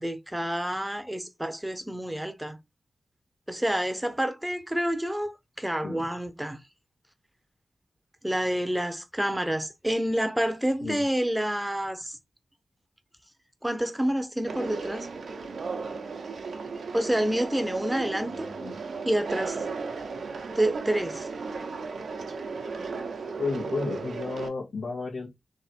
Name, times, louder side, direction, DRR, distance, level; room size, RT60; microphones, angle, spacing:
voice 1, 0.0-2.6 3.5-5.3 5.6-6.6 8.2-12.2 13.6-15.1 16.9-18.5 19.0-19.6 20.5-21.3, right 1 dB, 5° right, 0.8 m, -28 dB
Conversation, 14.5-24.5, right 4 dB, 85° right, 0.9 m, -35 dB
voice 2, 18.2-18.7 23.4-25.3, left 4 dB, 85° left, 1.5 m, -33 dB
3.6 x 3.3 x 4.3 m
wide cardioid pair, 95°, 0 cm